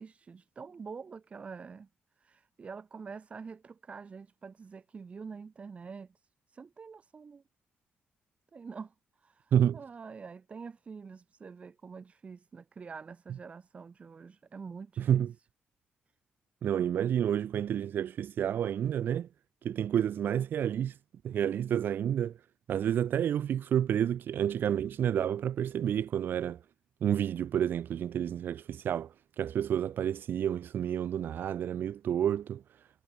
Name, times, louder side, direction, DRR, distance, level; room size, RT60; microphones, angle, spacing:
voice 1, 0.0-1.9 2.2-7.4 8.5-15.3, right 5 dB, 35° right, 3.1 m, -46 dB
voice 2, 15.0-15.3 16.6-19.3 19.6-20.9 21.2-22.4 22.7-26.6 27.0-32.6, right 9 dB, 65° right, 0.8 m, -29 dB
cardioid pair, 135°, 4 cm